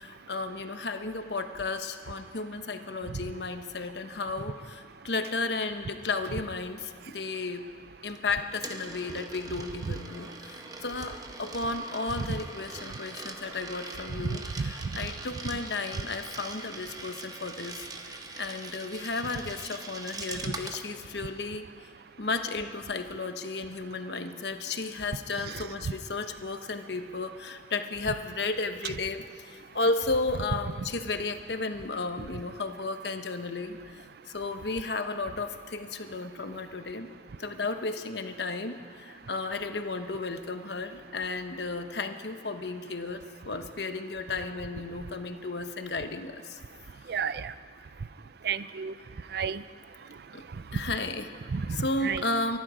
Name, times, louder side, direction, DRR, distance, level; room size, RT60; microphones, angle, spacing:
voice 1, 0.0-7.6 8.0-17.9 18.4-21.7 22.2-34.0 34.3-37.1 37.4-46.6 47.0-47.1 50.3-50.4 50.7-51.3 51.7-52.6, left 3 dB, 70° left, 8 dB, 1.0 m, -33 dB
Coin (dropping), 8.1-20.9, right 3 dB, 20° right, 1.0 m, -42 dB
voice 2, 47.1-47.5 48.4-48.9 49.3-49.6 51.5-51.8 52.0-52.2, right 6 dB, 60° right, 15 dB, 0.5 m, -31 dB
23.5 x 11.5 x 5.0 m, 2.2 s
head